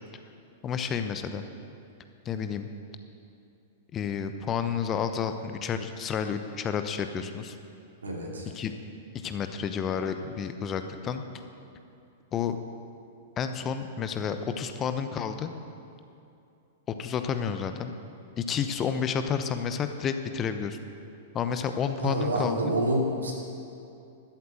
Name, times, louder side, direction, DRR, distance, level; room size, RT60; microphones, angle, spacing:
voice 1, 0.6-1.4 2.2-2.7 3.9-7.6 8.5-8.7 9.2-11.2 12.3-12.6 13.4-15.5 17.0-17.9 18.4-20.8 21.3-22.7, left 7 dB, 30° left, 8 dB, 0.8 m, -30 dB
voice 2, 8.0-8.5 22.0-23.3, right 1 dB, 80° right, -1 dB, 2.6 m, -28 dB
13.0 x 8.1 x 7.8 m, 2.6 s
figure-of-eight pair, 100°, 0 cm